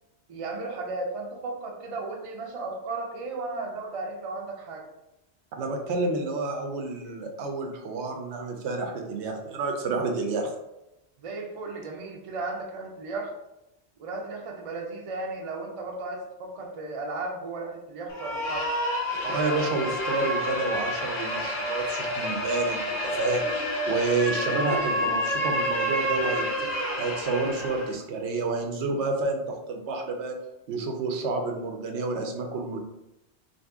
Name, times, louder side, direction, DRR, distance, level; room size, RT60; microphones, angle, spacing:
voice 1, 0.3-4.9 11.2-13.3 14.0-18.7, right 3 dB, 45° right, 1 dB, 0.4 m, -35 dB
voice 2, 5.5-10.5 19.2-26.5 27.0-30.4 30.7-32.8, right 3 dB, 85° right, 3 dB, 0.9 m, -29 dB
sound 1, 18.1-27.9, equal, 45° left, 0.7 m, -29 dB
2.7 x 2.6 x 3.4 m, 0.91 s
omnidirectional pair, 1.1 m